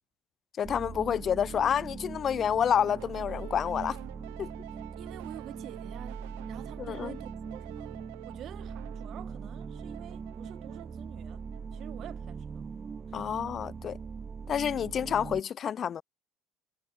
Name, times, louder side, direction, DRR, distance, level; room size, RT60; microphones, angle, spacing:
voice 1, 0.6-4.0 4.4-4.5 6.8-7.2 13.1-14.0 14.5-16.0, left 8 dB, 45° left, 0.5 m, -29 dB
sound 1, 0.6-15.4, right 5 dB, 30° right, 0.7 m, -41 dB
sound 2, 2.7-12.1, right 30 dB, 80° right, 1.4 m, -49 dB
voice 2, 5.0-8.0 8.2-12.6 13.1-13.4, right 12 dB, 55° right, 3.2 m, -48 dB
supercardioid pair, 85°, 0 cm